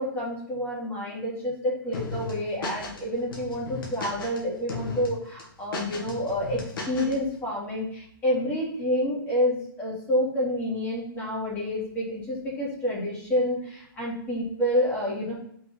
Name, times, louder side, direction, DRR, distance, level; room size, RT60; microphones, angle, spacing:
voice 1, 0.0-6.6 6.9-15.3, equal, 15° left, -6 dB, 2.8 m, -28 dB
sound 1, 1.9-3.0 3.3-4.4 4.7-5.1 5.4-7.2, left 4 dB, 65° left, 2.1 m, -35 dB
5.8 x 4.8 x 4.1 m, 0.67 s
hypercardioid pair, 155°, 13 cm